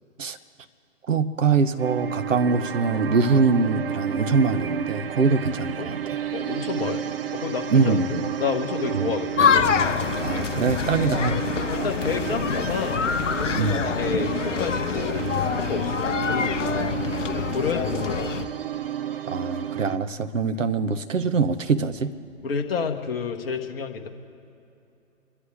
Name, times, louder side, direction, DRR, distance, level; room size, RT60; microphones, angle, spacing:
voice 1, 1.1-6.2 7.7-8.3 9.0-9.1 10.2-11.5 13.5-13.8 19.3-22.2, right 4 dB, 70° right, 9 dB, 1.0 m, -23 dB
sound 1, 1.8-20.0, right 10 dB, 45° right, 0.6 m, -32 dB
voice 2, 6.3-7.0 7.3-9.6 11.0-11.2 11.7-13.1 13.3-16.9 17.3-18.4 22.4-24.1, left 6 dB, 45° left, 4 dB, 1.4 m, -30 dB
sound 2, 9.4-18.4, left 7 dB, 60° left, 0.9 m, -26 dB
29.5 x 11.5 x 3.7 m, 2.8 s
figure-of-eight pair, 130°, 40 cm